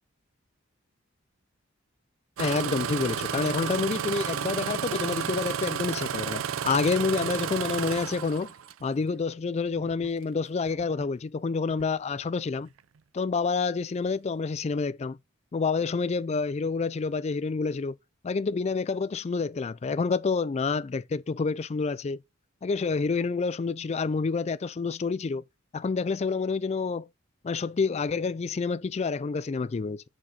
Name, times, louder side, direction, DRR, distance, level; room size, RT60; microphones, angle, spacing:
voice 1, 2.4-8.5 8.8-12.7 13.1-15.2 15.5-18.0 18.2-22.2 22.6-25.4 25.7-27.1 27.4-30.0, left 4 dB, 30° left, 0.3 m, -28 dB
Engine starting, 2.4-8.8 9.8-10.1 10.7-11.1 11.7-11.8, right 8 dB, 80° right, 0.4 m, -32 dB
6.5 x 4.7 x 5.6 m
head